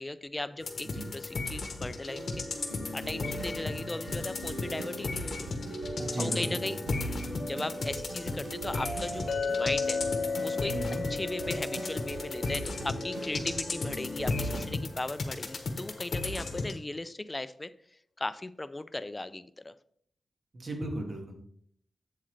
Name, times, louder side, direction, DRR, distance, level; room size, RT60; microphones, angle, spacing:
voice 1, 0.0-2.6 2.9-5.5 6.2-6.8 7.4-10.0 10.4-10.7 11.1-17.7 18.2-19.7, left 2 dB, 20° left, 14 dB, 0.4 m, -37 dB
sound 1, 0.6-16.8, left 3 dB, 50° left, 1.0 m, -36 dB
sound 2, 2.1-14.6, right 1 dB, 70° right, 3.5 m, -39 dB
voice 2, 6.0-6.7 10.7-11.0 20.5-21.3, right 1 dB, 45° right, 2 dB, 1.7 m, -35 dB
Chink clink, 9.3-13.5, left 5 dB, 90° left, 0.3 m, -34 dB
7.6 x 7.4 x 3.3 m, 0.65 s
wide cardioid pair, 135°, 0 cm